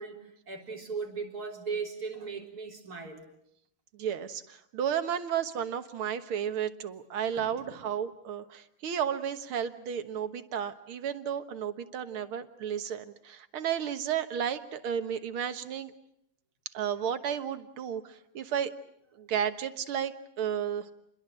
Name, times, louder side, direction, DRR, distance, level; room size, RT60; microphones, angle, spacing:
voice 1, 0.0-3.3 7.4-7.8, right 5 dB, 45° right, 0 dB, 4.3 m, -38 dB
voice 2, 3.9-15.9 16.7-18.7 19.2-20.9, right 8 dB, 85° right, 9 dB, 2.2 m, -33 dB
28.0 x 22.0 x 7.6 m, 0.77 s
omnidirectional pair, 2.3 m